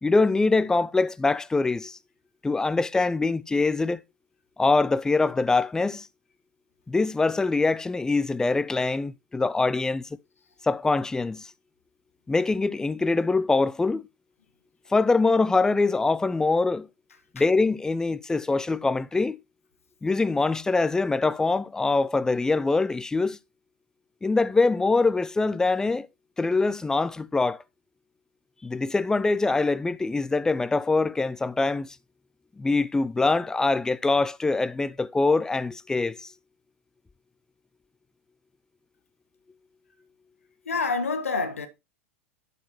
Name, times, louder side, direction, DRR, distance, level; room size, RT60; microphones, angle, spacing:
voice 1, 0.0-2.0 2.4-4.0 4.6-6.1 6.9-10.0 10.6-11.5 12.3-14.1 14.9-16.9 17.3-19.4 20.0-23.4 24.2-26.1 26.4-27.6 28.6-32.0 32.6-36.3, left 3 dB, 10° left, 0.4 m, -24 dB
voice 2, 40.6-41.7, left 4 dB, 75° left, 1.5 m, -27 dB
11.0 x 6.6 x 3.0 m
figure-of-eight pair, 90°, 7 cm